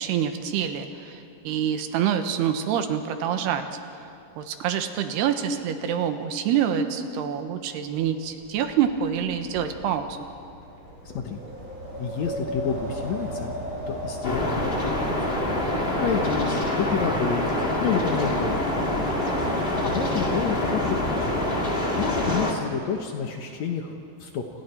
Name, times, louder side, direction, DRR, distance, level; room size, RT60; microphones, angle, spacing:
voice 1, 0.0-3.7 4.4-10.2 19.2-19.6, right 8 dB, 75° right, 7 dB, 3.0 m, -26 dB
Wind, 8.0-18.1, equal, 15° right, 6.4 m, -37 dB
voice 2, 11.0-11.4 12.0-13.5 13.9-15.4 16.0-17.5 17.8-18.7 19.8-21.7 22.0-23.9 24.2-24.4, left 6 dB, 80° left, 3 dB, 1.6 m, -29 dB
sound 1, 14.2-22.5, left 1 dB, 30° left, 1.0 m, -26 dB
28.5 x 27.0 x 4.5 m, 2.8 s
omnidirectional pair, 5.1 m